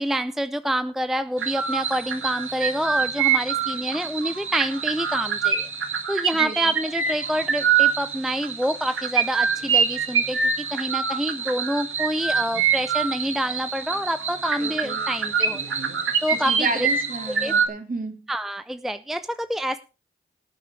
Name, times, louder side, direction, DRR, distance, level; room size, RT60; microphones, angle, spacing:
voice 1, 0.0-5.7 6.1-15.8 16.2-16.9 17.3-17.5 18.3-19.8, equal, ahead, 12 dB, 0.5 m, -27 dB
sound 1, 1.4-17.7, right 6 dB, 75° right, 1.8 m, -25 dB
voice 2, 6.3-6.7 14.6-15.0 16.3-18.1, right 3 dB, 40° right, 3 dB, 3.2 m, -32 dB
18.5 x 8.6 x 3.3 m, 0.32 s
cardioid pair, 65°, 21 cm